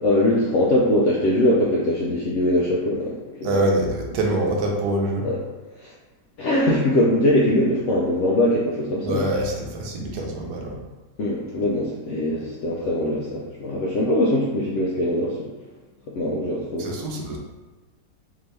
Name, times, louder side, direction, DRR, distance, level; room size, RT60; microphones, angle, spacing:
voice 1, 0.0-3.5 5.2-5.4 5.8-5.9 6.4-9.3 11.2-15.5 16.1-16.9, left 1 dB, 75° left, -4 dB, 0.7 m, -22 dB
voice 2, 3.4-5.3 9.0-10.8 16.8-17.4, right 1 dB, 75° right, 0 dB, 1.2 m, -25 dB
3.8 x 2.8 x 3.2 m, 1.3 s
omnidirectional pair, 1.8 m